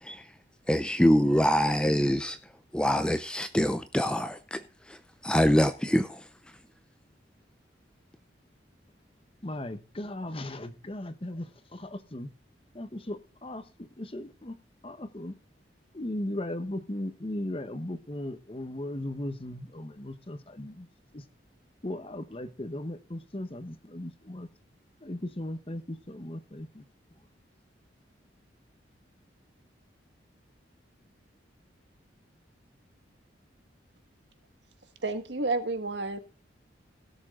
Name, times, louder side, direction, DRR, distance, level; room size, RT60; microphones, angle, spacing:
voice 1, 0.7-2.4 2.7-4.6 4.9-5.0 5.2-6.2, equal, 5° left, 0.6 m, -24 dB
voice 2, 9.4-12.3 12.7-14.6 14.8-15.4 15.9-20.9 21.1-21.2 21.8-24.5 25.0-26.8, left 1 dB, 30° left, 1.0 m, -37 dB
voice 3, 35.0-36.2, right 3 dB, 70° right, 1.6 m, -30 dB
17.0 x 7.3 x 3.8 m
head